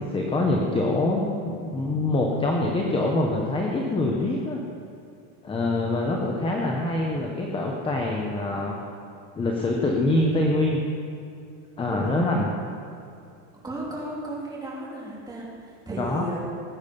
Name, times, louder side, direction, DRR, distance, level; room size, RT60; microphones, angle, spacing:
voice 1, 0.0-4.6 5.4-8.8 9.4-10.8 11.8-12.5 16.0-16.2, left 2 dB, 15° left, -1 dB, 1.2 m, -25 dB
voice 2, 13.6-16.4, right 1 dB, 10° right, -5 dB, 3.3 m, -34 dB
19.0 x 8.9 x 5.4 m, 2.5 s
supercardioid pair, 150°, 38 cm